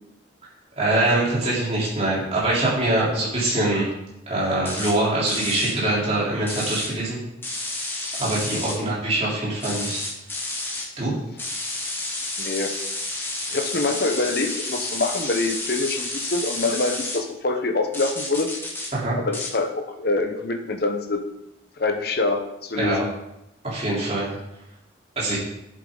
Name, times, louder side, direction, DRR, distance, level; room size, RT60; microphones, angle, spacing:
voice 1, 0.8-3.8 4.3-7.2 8.2-10.0 11.0-11.1 18.9-19.2 22.8-23.0 23.6-24.3 25.2-25.4, right 2 dB, 30° right, -7 dB, 3.7 m, -23 dB
sound 1, 4.6-4.9 5.3-5.7 6.5-6.9 7.4-8.8 9.6-10.9 11.4-17.2 17.9-18.9 19.3-19.5, left 2 dB, 10° left, 1.4 m, -30 dB
voice 2, 12.4-12.8 13.5-18.5 19.2-21.2 21.8-23.1, left 3 dB, 50° left, 5 dB, 1.0 m, -25 dB
11.0 x 7.5 x 4.0 m, 0.86 s
head